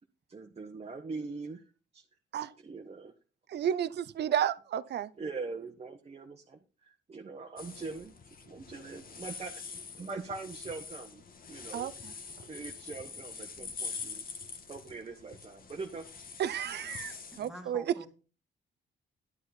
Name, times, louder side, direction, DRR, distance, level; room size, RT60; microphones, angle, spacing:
voice 1, 0.3-1.6 1.9-2.0 2.6-3.1 5.2-8.1 8.4-9.6 10.0-11.2 11.5-11.9 12.5-14.2 14.7-16.3, right 4 dB, 30° right, 1.3 m, -42 dB
voice 2, 3.5-5.1 11.7-11.9 16.4-17.8, right 9 dB, 60° right, 0.7 m, -32 dB
sound 1, 7.6-17.5, left 5 dB, 45° left, 1.5 m, -45 dB
voice 3, 17.3-18.1, right 1 dB, ahead, 2.3 m, -46 dB
11.0 x 7.6 x 4.2 m
cardioid pair, 90°, 20 cm